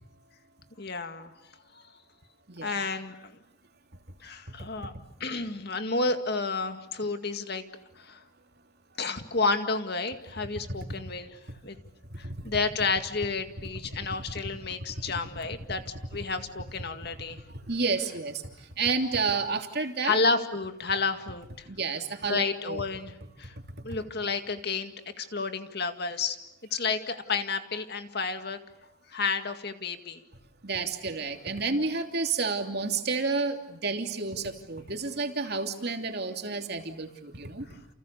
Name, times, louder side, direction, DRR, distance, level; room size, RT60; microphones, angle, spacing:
voice 1, 0.8-1.3 1.7-1.8 2.6-3.4 4.2-4.9 5.2-7.6 8.0-8.2 9.0-11.4 11.6-11.8 12.2-17.4 20.0-21.7 22.3-23.1 23.4-23.5 23.8-24.9 25.2-26.4 26.7-28.6 29.1-30.2, left 4 dB, 50° left, 8 dB, 2.1 m, -31 dB
voice 2, 17.5-20.2 21.7-22.8 23.9-24.0 30.6-37.7, right 4 dB, 50° right, 5 dB, 3.0 m, -30 dB
29.5 x 29.0 x 6.9 m, 0.83 s
head